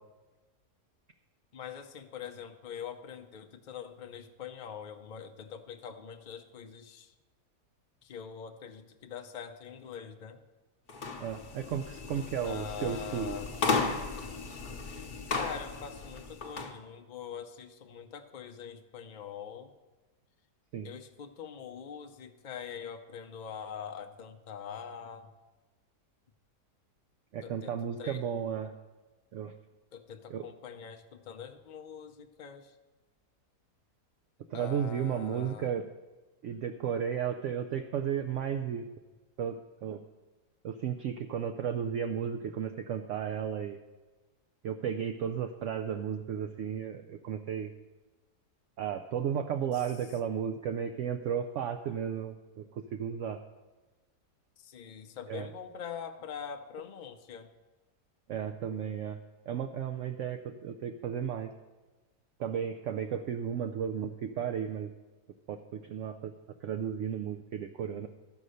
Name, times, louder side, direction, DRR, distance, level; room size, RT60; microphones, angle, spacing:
voice 1, 1.5-7.1 8.0-10.4 12.4-13.5 15.3-19.7 20.8-25.3 27.4-28.2 29.9-32.7 34.5-35.7 49.7-49.9 54.6-57.5, left 7 dB, 60° left, 6 dB, 0.4 m, -43 dB
sound 1, 10.9-16.7, left 4 dB, 40° left, 0.8 m, -35 dB
voice 2, 11.2-13.4 20.7-20.9 27.3-28.7 29.3-29.5 30.3-30.5 34.5-35.9 36.4-38.9 39.4-40.0 40.6-43.8 44.6-47.7 48.8-53.4 55.3-55.5 58.3-59.2 59.5-61.5 62.4-64.9 65.5-66.3 66.6-68.1, right 8 dB, 75° right, 7 dB, 0.7 m, -34 dB
13.0 x 5.4 x 6.4 m, 1.2 s
omnidirectional pair, 1.8 m